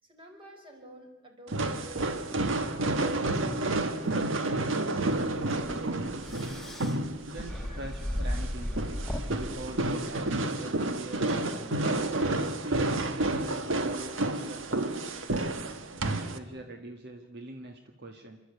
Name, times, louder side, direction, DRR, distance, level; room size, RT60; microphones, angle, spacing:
voice 1, 0.0-2.4 2.7-5.3 7.6-7.8, right 1 dB, 30° right, 3 dB, 4.6 m, -51 dB
sound 1, 1.5-16.4, right 2 dB, 90° right, 1.4 m, -30 dB
sound 2, 5.2-10.4, left 1 dB, ahead, 1.5 m, -36 dB
voice 2, 7.2-8.9 9.4-11.8 12.6-15.1 16.0-18.4, right 2 dB, 60° right, 4 dB, 1.5 m, -43 dB
28.0 x 13.0 x 8.4 m, 1.2 s
head